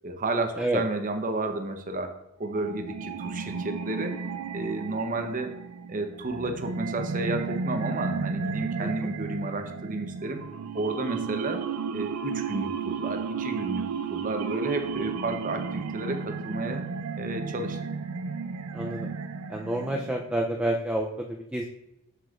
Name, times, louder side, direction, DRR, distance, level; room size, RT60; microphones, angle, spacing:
voice 1, 0.0-2.1 2.4-4.2 4.5-5.5 5.9-10.4 10.7-11.6 11.9-16.8 17.2-17.8, right 2 dB, 40° right, 5 dB, 0.8 m, -32 dB
sound 1, 2.5-20.4, right 5 dB, 85° right, 0.4 m, -33 dB
voice 2, 8.8-9.1 18.7-19.1 19.5-21.6, right 1 dB, 5° right, 0 dB, 0.4 m, -29 dB
7.7 x 6.8 x 2.4 m, 0.83 s
head